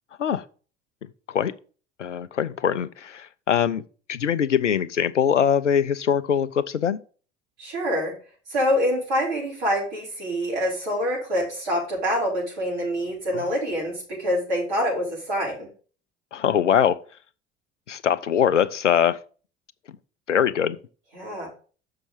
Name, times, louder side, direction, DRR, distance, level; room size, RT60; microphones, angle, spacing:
voice 1, 2.0-3.8 4.1-7.0 13.3-13.4 16.3-17.0 17.9-19.2 20.3-20.8, left 8 dB, 90° left, 0.5 m, -22 dB
voice 2, 7.6-8.1 8.5-15.7 21.1-21.5, equal, 70° right, 5.0 m, -26 dB
6.9 x 5.6 x 5.4 m
figure-of-eight pair, 65°, 35 cm